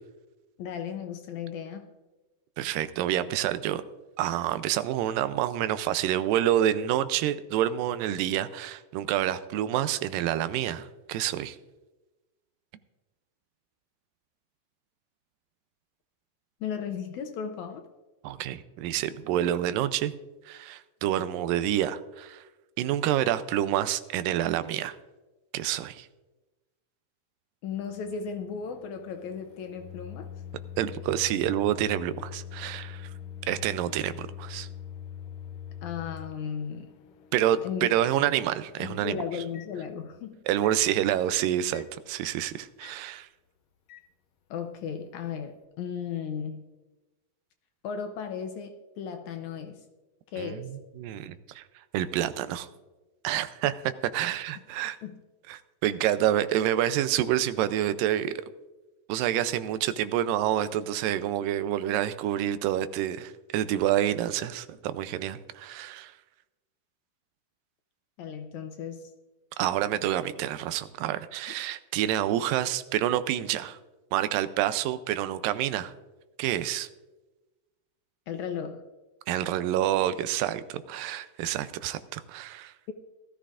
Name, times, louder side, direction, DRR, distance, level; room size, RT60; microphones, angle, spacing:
voice 1, 0.6-1.9 16.6-17.8 27.6-30.3 35.8-36.9 37.6-37.9 38.8-40.4 44.5-46.6 47.8-49.8 50.3-50.7 55.0-55.2 68.2-69.1 78.3-78.8, left 7 dB, 75° left, 6 dB, 1.9 m, -35 dB
voice 2, 2.6-3.8 4.2-11.6 18.2-20.1 20.5-22.4 22.8-24.9 25.5-26.1 30.8-33.1 33.5-34.7 37.3-39.2 40.5-43.3 50.4-50.7 51.0-51.6 51.9-52.7 53.2-55.0 55.5-58.4 59.1-66.1 69.6-73.8 74.1-75.9 76.4-76.9 79.3-82.7, right 12 dB, 90° right, 13 dB, 2.3 m, -28 dB
Microwave oven, 27.7-40.2 40.6-40.8 41.7-41.9 42.8-43.0 43.9-44.1, left 9 dB, 90° left, 1.4 m, -44 dB
18.0 x 13.5 x 2.5 m, 1.1 s
omnidirectional pair, 3.9 m